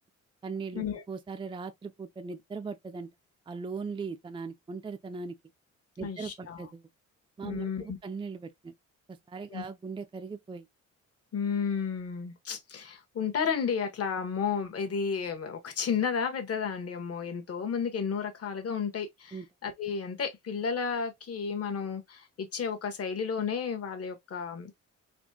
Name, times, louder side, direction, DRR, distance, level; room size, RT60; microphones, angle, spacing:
voice 1, 0.4-3.1 3.5-5.3 6.0-6.8 7.4-8.7 9.1-10.7 19.3-19.5, right 4 dB, 15° right, 0.5 m, -39 dB
voice 2, 6.0-6.6 7.4-8.0 9.5-9.7 11.3-19.4 19.6-24.7, left 6 dB, 50° left, 1.6 m, -32 dB
4.2 x 3.3 x 2.9 m
cardioid pair, 90°, 30 cm